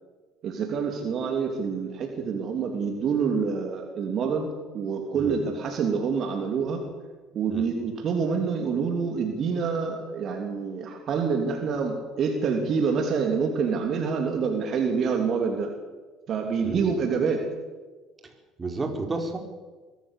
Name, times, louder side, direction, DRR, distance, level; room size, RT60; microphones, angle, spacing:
voice 1, 0.4-4.5 4.7-6.8 7.3-15.7 16.3-17.4, right 5 dB, 50° right, 4 dB, 3.1 m, -27 dB
voice 2, 16.6-16.9 18.2-18.3 18.6-19.4, right 3 dB, 25° right, 4 dB, 4.3 m, -31 dB
23.0 x 14.5 x 8.4 m, 1.3 s
hypercardioid pair, 65°, 0 cm